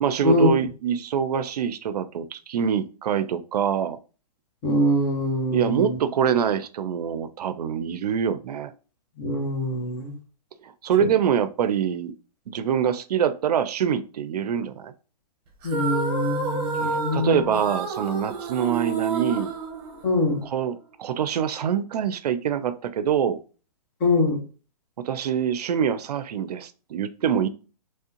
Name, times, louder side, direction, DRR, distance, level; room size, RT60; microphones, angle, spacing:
voice 1, 0.0-4.0 5.5-8.7 10.6-12.1 12.5-14.9 17.1-19.5 20.4-23.4 25.0-27.5, right 8 dB, 75° right, 0.5 m, -25 dB
voice 2, 4.6-6.0 9.2-10.1 15.6-17.4 20.0-20.4 24.0-24.4, left 1 dB, 30° left, 1.2 m, -23 dB
sound 1, 15.6-20.4, right 3 dB, 35° right, 1.0 m, -29 dB
3.5 x 3.2 x 2.9 m
hypercardioid pair, 150°, 20 cm